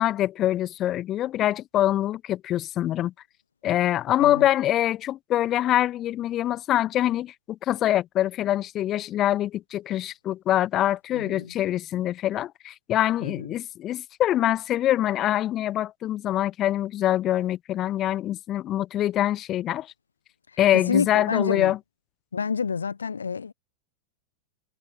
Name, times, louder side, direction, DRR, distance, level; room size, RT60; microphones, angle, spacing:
voice 1, 0.0-3.1 3.6-19.9 20.6-21.8, left 13 dB, 30° left, 1.3 m, -24 dB
voice 2, 11.1-11.5 13.2-13.5 20.7-21.7 22.3-23.5, left 5 dB, 75° left, 1.2 m, -28 dB
figure-of-eight pair, 90°, 0 cm